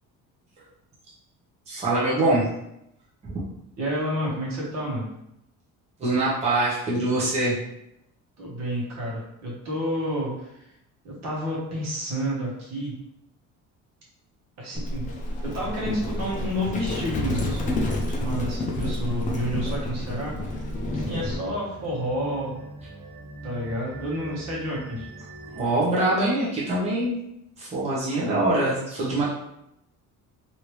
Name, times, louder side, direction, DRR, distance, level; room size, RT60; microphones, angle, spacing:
voice 1, 1.7-2.5 6.0-7.6 25.5-27.1 27.6-29.2, right 2 dB, 20° right, -8 dB, 0.9 m, -23 dB
voice 2, 3.8-5.1 8.4-10.7 11.0-13.0 14.6-15.0 15.4-22.6 23.4-25.1 28.1-28.4, equal, 55° right, -4 dB, 1.2 m, -30 dB
Livestock farm animals working animals, 14.7-21.4, left 1 dB, 25° left, 0.5 m, -29 dB
sound 1, 18.6-25.6, right 2 dB, 80° right, 0.8 m, -42 dB
3.2 x 2.8 x 3.0 m, 0.80 s
cardioid pair, 160°, 33 cm